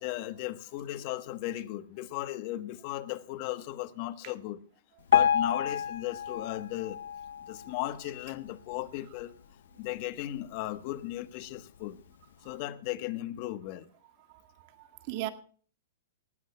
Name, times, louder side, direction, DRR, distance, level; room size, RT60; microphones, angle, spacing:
voice 1, 0.0-4.6 5.1-7.0 7.5-9.4 9.8-12.0 12.4-13.9, left 15 dB, 45° left, 1.2 m, -36 dB
Piano, 5.1-8.2 8.7-8.9 9.2-9.3 10.0-10.1 10.7-10.8, left 9 dB, 70° left, 0.7 m, -29 dB
voice 2, 14.3-15.3, right 15 dB, 45° right, 1.8 m, -38 dB
20.0 x 16.0 x 2.2 m
hypercardioid pair, 125°, 0 cm